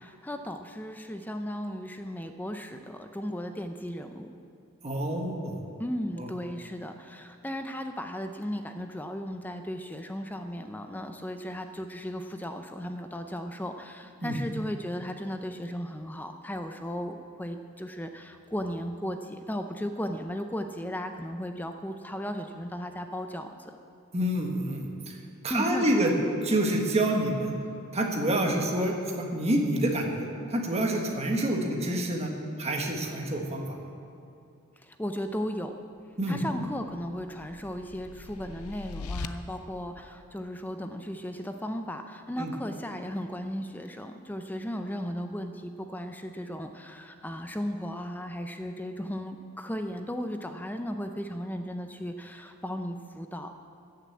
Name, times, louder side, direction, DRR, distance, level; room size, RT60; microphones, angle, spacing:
voice 1, 0.0-4.3 5.8-23.8 25.5-26.2 34.8-35.7 36.3-53.6, equal, 10° left, 7 dB, 0.5 m, -36 dB
voice 2, 4.8-5.6 6.2-6.3 14.2-14.4 24.1-25.1 25.4-26.1 26.4-27.5 27.9-32.3 32.6-33.8 36.2-36.4 42.4-42.5, right 1 dB, 30° right, 1 dB, 1.4 m, -27 dB
sound 1, 36.6-39.3, left 4 dB, 80° left, 0.6 m, -41 dB
14.0 x 6.7 x 8.5 m, 2.5 s
head